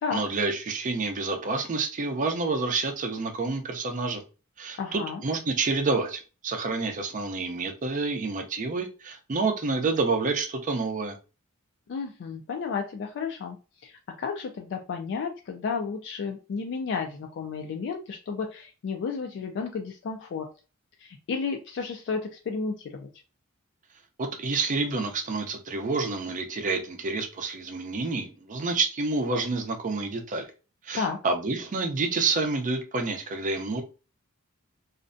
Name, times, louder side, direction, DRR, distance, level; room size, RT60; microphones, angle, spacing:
voice 1, 0.1-4.2 4.6-11.2 24.2-30.5 30.8-33.8, right 3 dB, 35° right, 0.4 m, -28 dB
voice 2, 4.8-5.2 11.9-13.6 13.8-20.5 21.0-23.1 30.9-31.2, left 5 dB, 55° left, 0.3 m, -32 dB
2.4 x 2.1 x 2.5 m
head